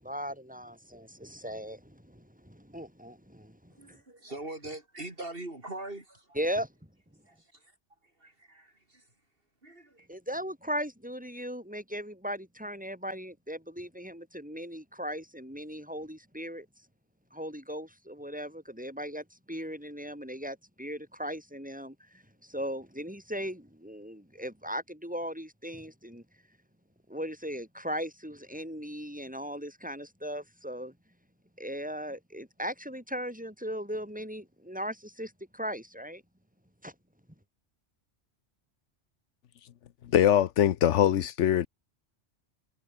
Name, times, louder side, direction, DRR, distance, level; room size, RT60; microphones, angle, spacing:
voice 1, 0.0-4.0 6.3-6.7 10.1-16.7 17.3-26.2 27.1-30.9 31.6-36.2 36.8-36.9, equal, 5° right, 7.4 m, -38 dB
voice 2, 3.8-6.2 7.3-7.4 8.2-8.7 9.6-10.1, right 2 dB, 50° right, 4.1 m, -41 dB
voice 3, 40.1-41.7, left 10 dB, 80° left, 1.1 m, -22 dB
omnidirectional pair, 1.2 m